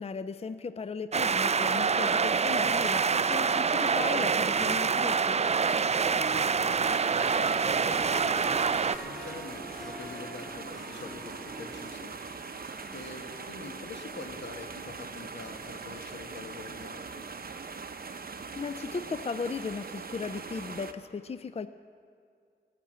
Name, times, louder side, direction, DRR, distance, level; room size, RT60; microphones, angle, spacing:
voice 1, 0.0-5.4 18.5-21.7, left 4 dB, 35° left, 13 dB, 0.4 m, -36 dB
sound 1, 1.1-9.0, right 5 dB, 40° right, 0.4 m, -26 dB
Harp, 3.8-16.6, right 1 dB, ahead, 1.3 m, -48 dB
voice 2, 6.1-12.6 12.9-17.2, left 3 dB, 85° left, 5 dB, 1.2 m, -45 dB
sound 2, 6.7-20.9, right 4 dB, 55° right, 0.8 m, -41 dB
17.5 x 6.8 x 7.5 m, 2.2 s
cardioid pair, 55°, 18 cm